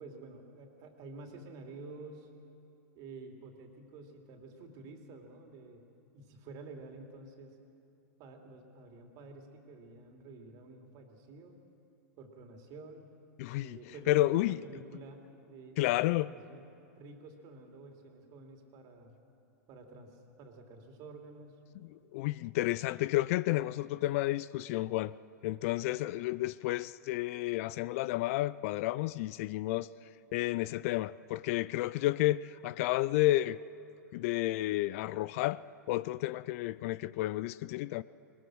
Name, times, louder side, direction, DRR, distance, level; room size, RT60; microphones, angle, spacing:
voice 1, 0.0-2.3 2.9-5.8 6.1-7.6 8.2-11.6 12.2-13.1 13.6-15.9 16.3-16.6 16.9-19.1 19.7-21.6, right 3 dB, 45° right, 2.8 m, -50 dB
voice 2, 13.4-13.8 14.1-14.6 15.8-16.3 22.1-25.1 25.4-29.9 30.3-33.6 34.1-35.6 35.9-38.0, left 16 dB, 55° left, 0.4 m, -31 dB
21.0 x 21.0 x 6.3 m
hypercardioid pair, 120°, 9 cm